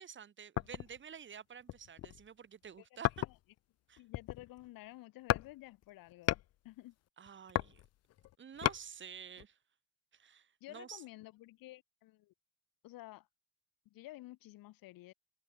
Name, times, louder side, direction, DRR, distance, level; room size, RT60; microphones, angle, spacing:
voice 1, 0.0-3.1 3.9-4.0 7.2-7.8 8.4-9.6 10.1-11.0, right 7 dB, 30° right, 1.8 m, -50 dB
sound 1, 0.6-1.0 1.6-2.3 3.0-3.6 4.0-4.7 5.3-5.5 5.8-6.5 7.3-8.8 9.4-9.5, left 15 dB, 45° left, 0.6 m, -35 dB
voice 2, 4.0-7.0 10.6-12.3 12.8-13.3 13.9-15.1, left 17 dB, 65° left, 2.6 m, -52 dB
cardioid pair, 125°, 36 cm